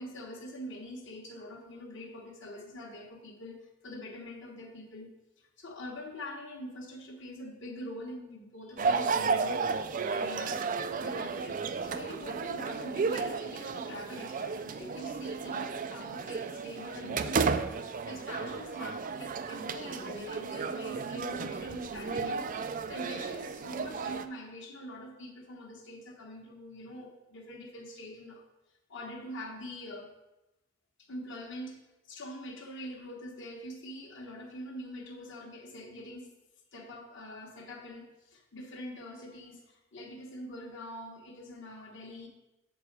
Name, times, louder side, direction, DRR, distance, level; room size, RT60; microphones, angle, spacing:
voice 1, 0.0-9.7 10.1-10.7 10.9-28.4 28.9-30.1 31.0-36.3 36.7-42.3, left 1 dB, 55° left, 2 dB, 1.3 m, -44 dB
sound 1, 8.8-24.3, right 5 dB, 35° right, 0.3 m, -33 dB
7.6 x 4.6 x 6.6 m, 0.98 s
head